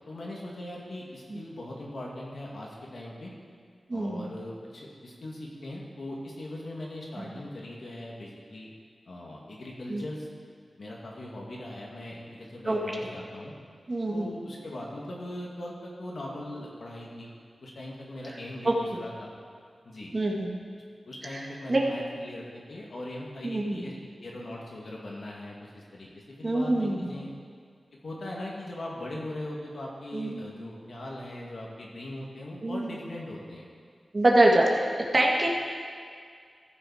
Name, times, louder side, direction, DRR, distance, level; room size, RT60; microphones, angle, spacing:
voice 1, 0.0-3.3 3.9-8.7 9.1-10.3 10.8-13.5 14.1-17.3 17.6-19.3 19.8-20.1 21.1-27.3 28.0-33.6, left 1 dB, 65° left, -3 dB, 2.2 m, -40 dB
voice 2, 3.9-4.2 7.2-7.3 9.9-10.0 12.6-12.8 13.9-14.4 18.6-19.0 20.1-20.5 21.3-21.4 21.7-21.8 23.4-23.8 26.4-27.1 30.1-30.5 32.6-32.9 34.1-34.9 35.1-35.5, right 1 dB, 40° right, -1 dB, 1.6 m, -25 dB
15.0 x 6.6 x 4.9 m, 2.1 s
wide cardioid pair, 75°, 0 cm